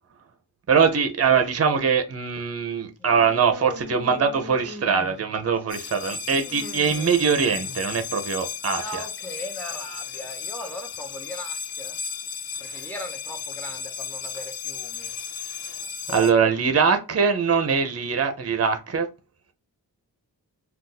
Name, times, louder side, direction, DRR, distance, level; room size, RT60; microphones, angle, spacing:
voice 1, 0.7-9.0 15.5-15.8 16.1-19.1, right 6 dB, 40° right, 0.6 m, -22 dB
voice 2, 3.0-3.4 8.7-12.0 12.6-15.2 16.1-16.9, equal, 5° left, 0.9 m, -39 dB
Human voice, 3.2-5.5 6.3-8.2, left 1 dB, 25° right, 1.3 m, -41 dB
sound 1, 5.7-16.3, left 7 dB, 75° left, 0.5 m, -35 dB
2.5 x 2.3 x 3.8 m
wide cardioid pair, 65°, 37 cm